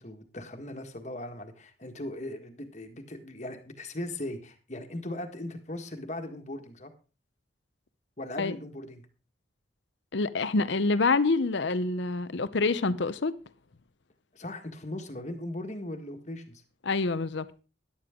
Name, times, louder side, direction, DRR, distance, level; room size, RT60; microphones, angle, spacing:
voice 1, 0.0-6.9 8.2-9.1 14.3-16.6, left 1 dB, 35° left, 1.6 m, -38 dB
voice 2, 10.1-13.3 16.8-17.5, left 3 dB, 70° left, 0.7 m, -26 dB
13.5 x 11.0 x 3.7 m
head